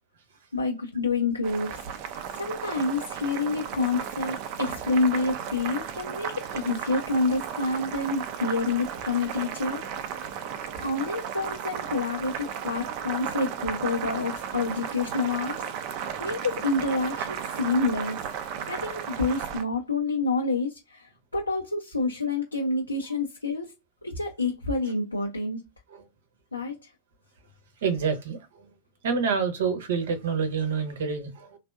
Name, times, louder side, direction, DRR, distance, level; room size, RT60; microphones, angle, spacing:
voice 1, 0.5-1.8 2.1-9.8 10.6-15.6 16.2-18.2 18.7-23.7 24.0-25.6 26.5-26.9, left 3 dB, 80° left, 0.5 m, -28 dB
Boiling, 1.4-19.6, right 8 dB, 45° right, 0.5 m, -35 dB
voice 2, 27.8-28.4 29.0-31.6, right 6 dB, 60° right, 0.9 m, -27 dB
3.3 x 2.3 x 2.3 m
figure-of-eight pair, 90°, 0 cm